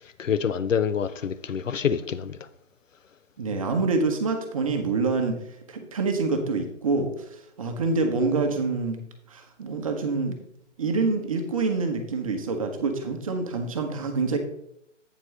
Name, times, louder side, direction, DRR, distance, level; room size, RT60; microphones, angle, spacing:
voice 1, 0.2-2.4, left 7 dB, 90° left, 0.5 m, -26 dB
voice 2, 3.4-5.4 5.7-9.0 9.3-10.4 10.8-14.4, right 3 dB, 30° right, 0.8 m, -26 dB
8.5 x 7.4 x 3.2 m
figure-of-eight pair, 140°, 37 cm